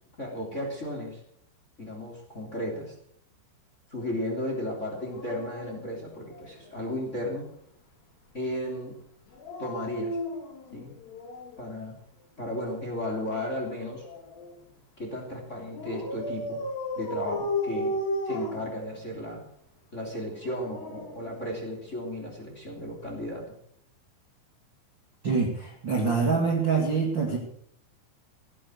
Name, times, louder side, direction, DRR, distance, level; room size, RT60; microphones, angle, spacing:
voice 1, 0.2-1.2 1.8-2.9 3.9-7.5 8.3-8.9 9.6-10.2 10.7-10.9 11.6-12.0 12.4-14.0 15.0-16.6 17.0-17.9 18.2-19.4 19.9-23.6, left 1 dB, 20° left, 1 dB, 2.7 m, -34 dB
Dog, 5.0-6.8 9.3-11.7 12.9-14.6 15.7-19.3 20.3-21.9 23.2-23.4, left 1 dB, 65° left, 5.4 m, -35 dB
voice 2, 25.2-27.4, right 4 dB, 40° right, 1 dB, 1.8 m, -25 dB
16.0 x 11.0 x 6.6 m, 0.68 s
omnidirectional pair, 5.4 m